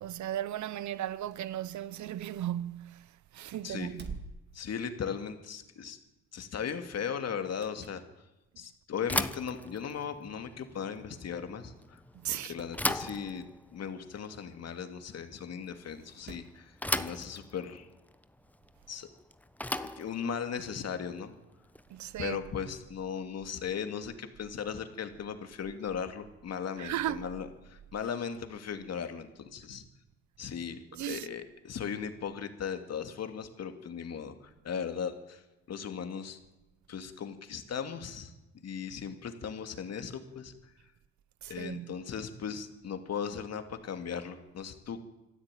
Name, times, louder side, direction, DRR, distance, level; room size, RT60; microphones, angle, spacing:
voice 1, 0.0-3.0 3.3-4.2 12.1-12.5 21.9-22.4 26.8-27.2 30.9-31.3 41.4-41.9, right 12 dB, 70° right, 0.9 m, -36 dB
sound 1, 1.2-3.1 3.5-5.4 5.8-6.0 7.3-8.1 8.6-8.7 9.6-9.7 9.9-10.0 10.2-10.3 11.1-11.3 11.6-11.7 12.1-12.8 14.7-14.8 15.8-16.6 17.9-18.0, right 4 dB, 35° right, 2.5 m, -50 dB
voice 2, 3.6-3.9 4.5-6.0 6.3-8.0 8.6-12.0 12.3-17.9 18.9-19.1 19.8-21.3 22.2-29.8 30.4-30.8 31.1-35.4 35.7-36.4 36.9-38.3 38.6-40.5 41.5-45.0, left 7 dB, 55° left, 2.5 m, -37 dB
Bicycle / Thump thud, 9.0-22.1, left 1 dB, 5° left, 1.0 m, -38 dB
26.5 x 12.5 x 9.2 m
cardioid pair, 90°, 30 cm